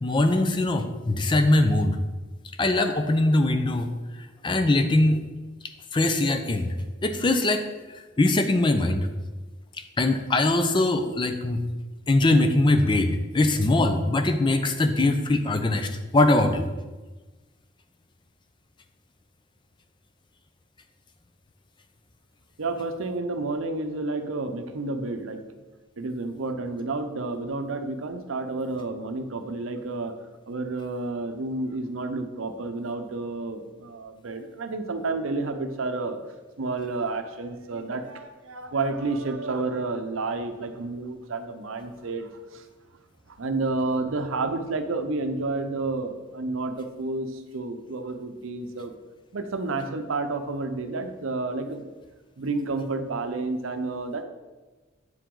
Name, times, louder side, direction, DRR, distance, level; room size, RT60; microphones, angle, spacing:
voice 1, 0.0-2.0 2.6-3.9 4.2-5.2 5.9-6.7 7.0-7.6 8.2-9.1 10.0-11.6 12.1-16.7, left 2 dB, 25° left, 8 dB, 0.4 m, -22 dB
voice 2, 22.6-25.4 26.0-30.1 30.5-36.2 36.6-42.6 43.3-48.9 49.3-51.8 52.4-54.2, right 3 dB, 85° right, 8 dB, 0.6 m, -30 dB
7.7 x 4.8 x 3.8 m, 1.2 s
head